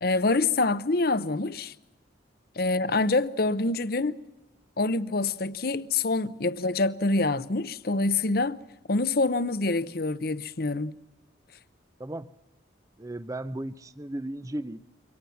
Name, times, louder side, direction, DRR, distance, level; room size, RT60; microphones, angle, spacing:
voice 1, 0.0-1.7 2.6-4.2 4.8-8.6 8.9-10.9, left 3 dB, 50° left, 0.8 m, -26 dB
voice 2, 12.0-12.3 13.0-14.9, right 1 dB, 15° right, 0.7 m, -35 dB
24.0 x 18.5 x 7.1 m
head